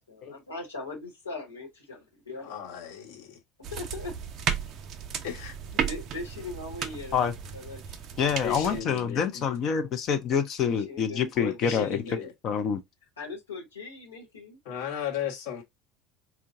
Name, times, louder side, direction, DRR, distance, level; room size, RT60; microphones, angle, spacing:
voice 1, 0.1-2.5 3.7-4.1 5.8-8.0 10.9-12.3 13.2-14.6, left 3 dB, 80° left, 1.3 m, -40 dB
voice 2, 2.4-3.4 5.2-5.6 8.4-9.5 11.4-12.3 14.6-15.6, left 9 dB, 60° left, 1.2 m, -35 dB
sound 1, 3.6-8.8, right 7 dB, 45° right, 0.5 m, -34 dB
voice 3, 8.2-12.0 12.4-12.8, left 7 dB, 45° left, 0.6 m, -27 dB
4.5 x 2.3 x 2.5 m
figure-of-eight pair, 65°, 0 cm